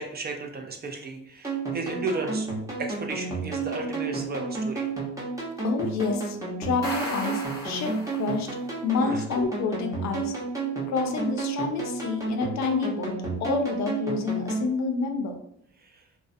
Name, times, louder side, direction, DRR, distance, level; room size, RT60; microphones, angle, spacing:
voice 1, 0.0-2.5 2.8-4.9 9.0-9.2 15.8-16.0, right 3 dB, 35° right, 3 dB, 0.4 m, -34 dB
sound 1, 1.4-14.7, right 4 dB, 10° right, 0.8 m, -31 dB
voice 2, 5.6-8.5 8.8-10.3 10.9-13.1 13.4-15.4, left 4 dB, 65° left, 5 dB, 0.5 m, -28 dB
sound 2, 6.6-8.6, equal, 10° left, 1.1 m, -35 dB
2.3 x 2.1 x 2.5 m, 0.74 s
cardioid pair, 90°, 30 cm